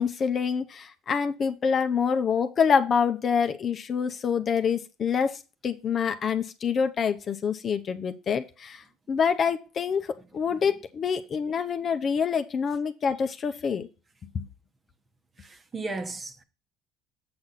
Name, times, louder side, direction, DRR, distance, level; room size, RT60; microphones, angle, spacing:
voice 1, 0.0-13.9 14.3-14.4, left 6 dB, 40° left, 0.7 m, -26 dB
voice 2, 15.4-16.4, right 3 dB, 25° right, 1.1 m, -35 dB
7.8 x 6.1 x 4.1 m
cardioid pair, 115°, 0 cm